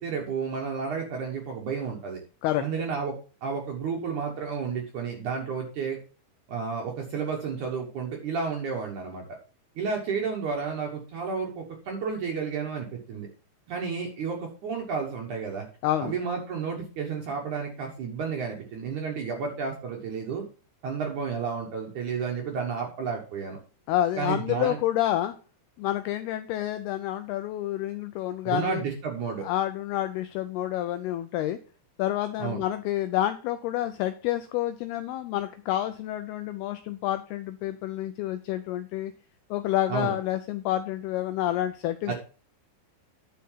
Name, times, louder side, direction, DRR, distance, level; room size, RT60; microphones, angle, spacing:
voice 1, 0.0-2.2 2.6-3.1 3.4-6.0 6.5-9.2 9.8-13.3 13.7-15.7 16.0-20.4 20.8-23.6 24.2-24.8 28.5-29.5 32.4-32.6 39.9-40.1 42.1-42.2, right 5 dB, 65° right, 1 dB, 2.0 m, -31 dB
voice 2, 15.8-16.1 23.9-25.4 25.8-28.8 29.4-31.6 32.0-39.1 39.5-42.1, left 13 dB, 90° left, 10 dB, 2.2 m, -28 dB
9.7 x 5.6 x 5.6 m, 0.38 s
omnidirectional pair, 5.2 m